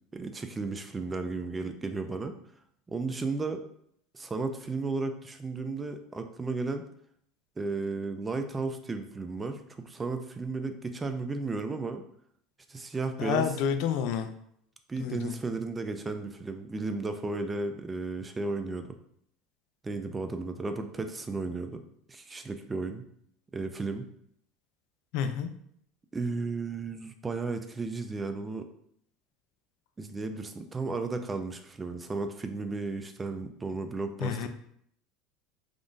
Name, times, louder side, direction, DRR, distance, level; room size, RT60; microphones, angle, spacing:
voice 1, 0.1-2.4 2.9-3.6 4.1-6.8 7.6-12.0 12.7-13.5 14.9-18.9 19.8-21.8 22.1-23.0 23.5-24.1 26.1-28.7 30.0-34.5, right 3 dB, 15° right, 7 dB, 0.3 m, -34 dB
voice 2, 13.2-14.3 15.0-15.3 25.1-25.5 34.2-34.5, left 8 dB, 70° left, 8 dB, 0.3 m, -29 dB
3.6 x 2.5 x 2.4 m, 0.69 s
supercardioid pair, 115°, 0 cm